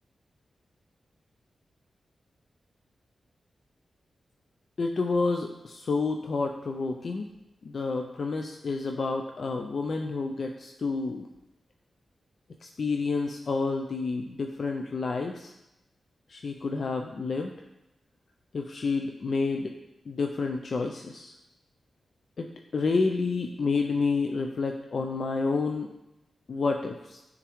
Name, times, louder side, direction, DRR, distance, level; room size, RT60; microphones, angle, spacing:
voice 1, 4.8-7.3 7.6-11.3 12.6-15.5 16.3-17.5 18.5-19.7 20.1-21.3 22.4-25.9 26.5-27.2, left 4 dB, 55° left, 4 dB, 0.4 m, -29 dB
9.9 x 3.6 x 3.1 m, 0.95 s
wide cardioid pair, 95°, 0 cm